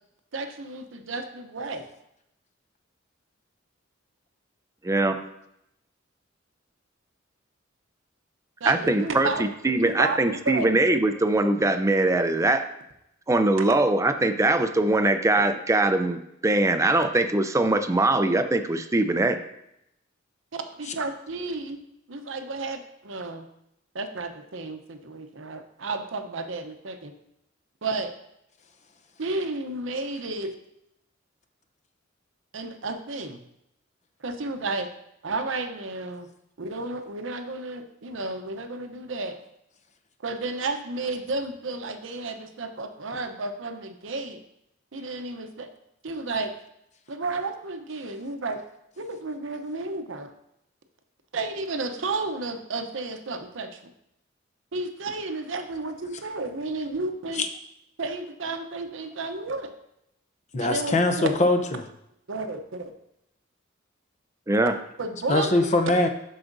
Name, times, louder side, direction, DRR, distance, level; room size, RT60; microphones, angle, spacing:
voice 1, 0.3-1.8 8.6-10.7 20.8-21.8 22.1-23.5 23.9-27.1 27.8-28.1 29.2-30.5 32.5-33.4 34.2-34.9 35.2-36.3 36.6-39.4 40.2-44.4 44.9-45.7 46.0-46.5 47.1-48.6 49.0-50.3 51.3-53.9 54.7-57.4 58.0-59.7 60.6-61.3 62.3-62.9 65.0-65.5, right 3 dB, 70° right, 0.8 m, -32 dB
voice 2, 4.8-5.2 8.7-12.6 13.3-19.4 64.5-64.7, right 2 dB, 15° right, 0.4 m, -22 dB
voice 3, 60.5-61.8 65.3-66.1, left 2 dB, 35° left, 0.7 m, -22 dB
12.0 x 4.9 x 2.6 m
head